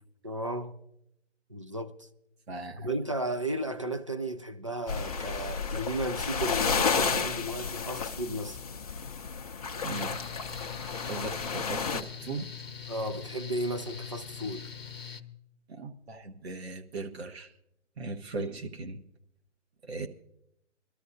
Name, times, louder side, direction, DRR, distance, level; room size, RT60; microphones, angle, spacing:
voice 1, 0.2-0.8 1.5-2.1 2.8-8.6 12.9-14.7 18.4-18.5, right 1 dB, 30° right, 0.4 m, -34 dB
voice 2, 2.5-2.9 9.8-10.2 11.1-12.5 15.7-17.5 18.0-19.0 19.8-20.1, right 3 dB, 55° right, 1.4 m, -38 dB
sound 1, 4.9-12.0, left 5 dB, 30° left, 0.6 m, -32 dB
Mechanical fan, 9.9-15.2, left 7 dB, 50° left, 0.9 m, -42 dB
23.0 x 12.5 x 2.7 m
figure-of-eight pair, 145°, 38 cm